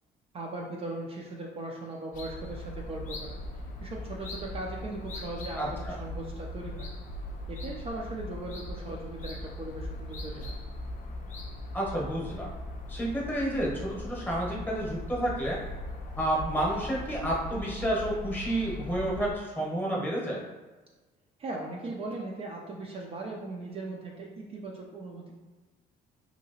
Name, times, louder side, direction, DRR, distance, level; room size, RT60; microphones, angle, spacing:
voice 1, 0.3-3.4 3.8-6.9 7.5-10.6 21.4-25.3, right 2 dB, 35° right, -1 dB, 0.4 m, -39 dB
sound 1, 2.1-19.3, left 1 dB, 50° left, 0.5 m, -39 dB
voice 2, 5.6-6.0 11.7-12.5 12.9-15.6 16.2-20.4, right 1 dB, 10° left, -3 dB, 0.9 m, -30 dB
2.8 x 2.8 x 2.8 m, 1.2 s
cardioid pair, 110°, 17 cm